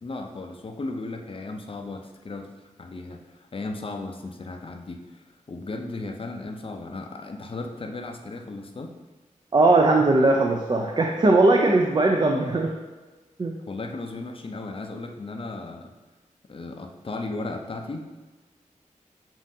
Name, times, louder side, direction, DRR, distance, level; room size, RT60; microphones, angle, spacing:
voice 1, 0.0-2.5 2.8-8.9 13.7-15.9 16.5-18.1, left 2 dB, 40° left, 4 dB, 0.5 m, -35 dB
voice 2, 9.5-12.7 13.4-13.5, right 2 dB, 35° right, 1 dB, 0.4 m, -19 dB
7.3 x 2.6 x 2.7 m, 1.2 s
cardioid pair, 50°, 14 cm